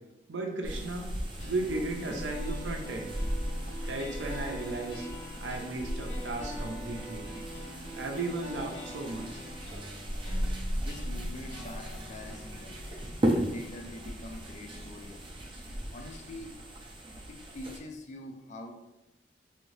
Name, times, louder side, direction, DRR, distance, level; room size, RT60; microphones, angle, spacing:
voice 1, 0.3-1.1 1.4-3.1 3.9-5.1 5.4-7.3 7.9-9.4, right 2 dB, 80° right, 2 dB, 0.5 m, -35 dB
sound 1, 0.6-17.8, equal, 30° right, 0.5 m, -36 dB
sound 2, 1.4-15.4, equal, 75° left, 1.2 m, -45 dB
voice 2, 10.8-12.8 13.3-15.2 15.9-16.6 17.3-18.7, left 1 dB, 40° left, 3 dB, 0.4 m, -44 dB
2.8 x 2.6 x 3.1 m, 0.95 s
head